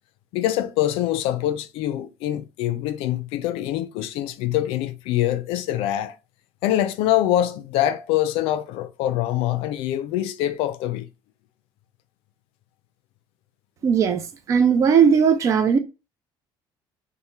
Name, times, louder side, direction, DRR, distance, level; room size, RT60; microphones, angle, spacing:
voice 1, 0.3-6.2 6.6-11.1, left 12 dB, 80° left, 0.3 m, -24 dB
voice 2, 13.8-14.2 14.5-15.8, right 7 dB, 35° right, 0.3 m, -17 dB
2.7 x 2.1 x 3.2 m
cardioid pair, 170°, 9 cm